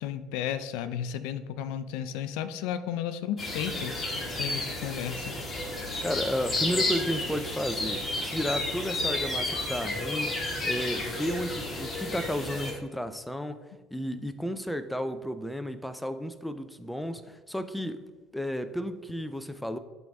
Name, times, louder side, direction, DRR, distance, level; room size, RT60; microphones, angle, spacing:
voice 1, 0.0-4.1 4.4-5.4, left 9 dB, 85° left, 12 dB, 0.5 m, -33 dB
sound 1, 3.4-12.7, left 2 dB, 25° left, 1.9 m, -32 dB
voice 2, 6.0-10.4 10.6-18.1 18.3-19.8, equal, 5° left, 10 dB, 0.5 m, -33 dB
11.5 x 3.9 x 3.5 m, 1.4 s
cardioid pair, 120°, 0 cm